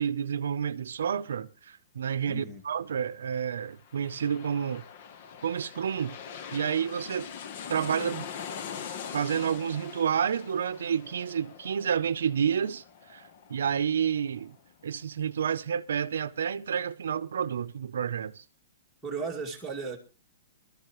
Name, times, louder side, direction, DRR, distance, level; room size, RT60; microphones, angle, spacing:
voice 1, 0.0-4.8 5.4-6.2 6.5-7.3 7.7-8.3 9.1-14.6 14.8-18.4, right 8 dB, 85° right, 0.6 m, -30 dB
voice 2, 2.3-2.6 19.0-20.0, right 4 dB, 5° right, 2.2 m, -35 dB
sound 1, 3.6-14.9 15.3-15.4, left 7 dB, 45° left, 1.0 m, -43 dB
20.0 x 13.0 x 3.1 m
hypercardioid pair, 160°, 0 cm